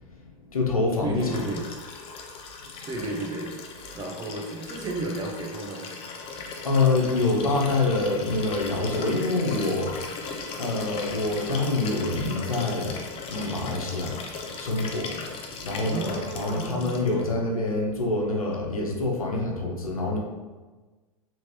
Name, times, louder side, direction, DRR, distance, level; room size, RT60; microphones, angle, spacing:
voice 1, 0.5-1.3 2.7-2.8 6.3-10.2 10.6-14.2 14.6-15.3 15.6-20.2, left 2 dB, 90° left, -1 dB, 0.7 m, -26 dB
voice 2, 1.0-1.7 2.9-3.5 3.9-5.9 15.7-17.4, right 2 dB, 25° right, 0 dB, 0.7 m, -33 dB
Liquid, 1.2-17.2 18.5-18.6, left 4 dB, 30° left, 0.5 m, -38 dB
3.0 x 3.0 x 2.9 m, 1.3 s
hypercardioid pair, 95°, 18 cm